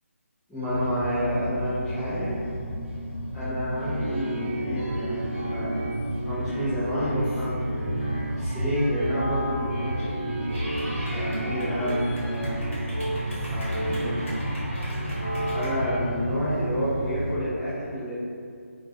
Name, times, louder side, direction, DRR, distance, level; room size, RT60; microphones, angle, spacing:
voice 1, 0.5-2.3 3.3-5.7 6.2-7.8 8.4-10.4 11.1-12.7 13.1-14.2 15.5-18.1, equal, 5° left, -17 dB, 0.4 m, -29 dB
sound 1, 0.7-17.3, equal, 50° right, 0.6 m, -32 dB
sound 2, 3.8-16.0, right 1 dB, 35° left, 0.8 m, -34 dB
Clapping / Cheering, 10.5-15.7, equal, 60° left, 1.1 m, -39 dB
2.3 x 2.0 x 2.6 m, 2.3 s
figure-of-eight pair, 165°, 8 cm